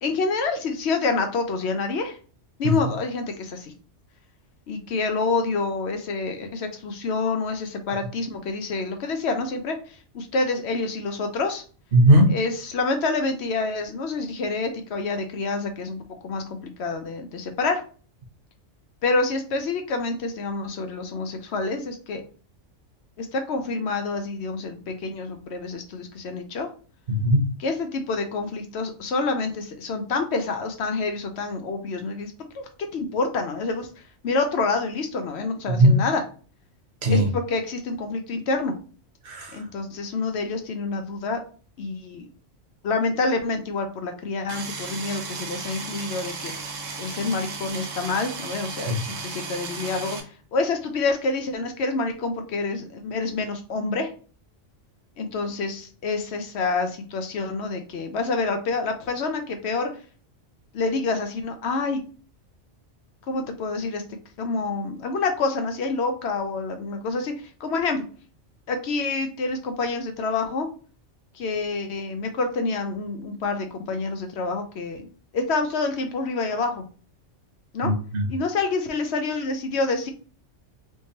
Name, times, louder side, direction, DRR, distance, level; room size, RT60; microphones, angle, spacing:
voice 1, 0.0-2.2 2.6-3.7 4.7-9.8 10.1-11.6 12.3-17.8 19.0-22.2 23.2-26.7 27.6-33.9 34.2-36.2 37.1-38.7 39.5-41.4 41.8-42.3 42.8-46.5 47.0-50.2 50.5-54.1 55.2-59.9 60.7-62.0 63.3-64.0 64.4-67.3 67.6-68.0 68.7-70.7 71.3-75.1 75.3-76.8 77.7-77.9 78.3-80.1, left 3 dB, 65° left, 0.8 m, -27 dB
voice 2, 11.9-12.4 27.1-27.5 35.7-35.9 37.0-37.3 39.3-39.6 48.9-49.0 77.8-78.3, right 1 dB, 50° right, 0.9 m, -18 dB
sound 1, 44.5-50.2, right 4 dB, 90° right, 1.1 m, -35 dB
3.4 x 3.1 x 2.7 m
omnidirectional pair, 1.3 m